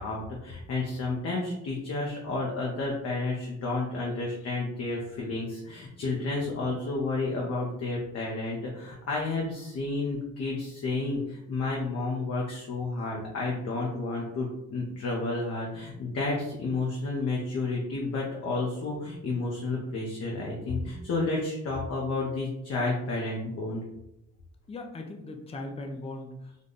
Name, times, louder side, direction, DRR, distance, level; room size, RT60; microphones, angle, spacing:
voice 1, 0.0-23.8, left 3 dB, 55° left, -3 dB, 0.9 m, -31 dB
voice 2, 24.7-26.6, left 2 dB, 20° left, 4 dB, 0.5 m, -39 dB
3.6 x 2.2 x 3.9 m, 0.88 s
cardioid pair, 90°, 30 cm